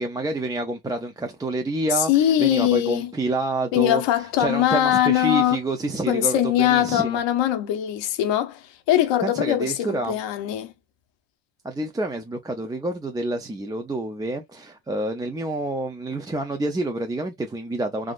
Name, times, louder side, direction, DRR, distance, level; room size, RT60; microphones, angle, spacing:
voice 1, 0.0-4.0 4.4-7.2 9.2-10.2 11.6-18.1, right 2 dB, 10° right, 0.3 m, -28 dB
voice 2, 1.9-3.1 3.7-5.6 6.1-10.7, left 12 dB, 75° left, 0.8 m, -21 dB
3.6 x 2.4 x 2.4 m
cardioid pair, 110°, 44 cm